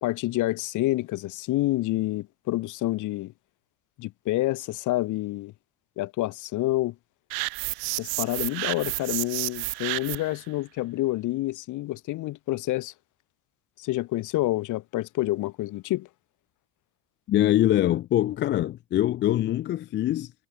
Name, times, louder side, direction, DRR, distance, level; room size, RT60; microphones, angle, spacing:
voice 1, 0.0-3.3 4.0-5.5 6.0-6.9 8.0-12.9 13.8-16.1, left 17 dB, 60° left, 1.2 m, -28 dB
sound 1, 7.3-10.4, right 40 dB or more, 85° right, 0.9 m, -31 dB
voice 2, 17.3-20.3, left 13 dB, 35° left, 0.4 m, -23 dB
cardioid pair, 115°, 35 cm